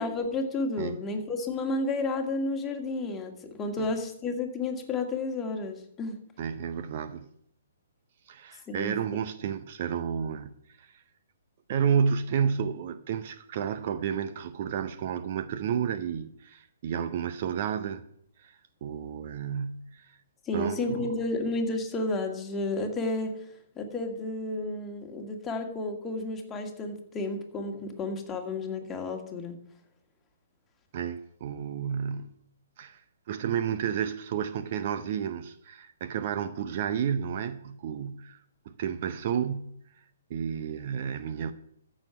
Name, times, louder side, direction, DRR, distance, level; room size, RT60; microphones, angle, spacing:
voice 1, 0.0-6.2 8.7-8.9 20.4-23.5 23.8-29.6, left 2 dB, 15° left, 1.9 m, -31 dB
voice 2, 6.4-7.3 8.3-10.9 11.7-18.0 18.4-18.5 18.8-20.1 20.5-21.1 30.9-32.3 32.8-33.0 33.3-38.4 38.7-39.8 40.3-41.5, right 7 dB, 45° right, 0.7 m, -31 dB
14.0 x 6.4 x 5.9 m
figure-of-eight pair, 125°, 0 cm